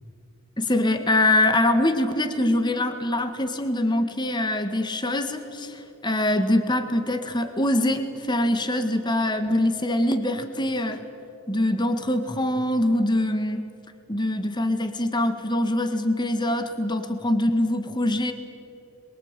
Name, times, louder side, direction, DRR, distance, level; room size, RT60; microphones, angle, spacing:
voice 1, 0.6-11.0 11.5-13.6 14.1-18.3, left 1 dB, 20° left, 8 dB, 1.8 m, -24 dB
26.0 x 22.5 x 9.1 m, 2.9 s
head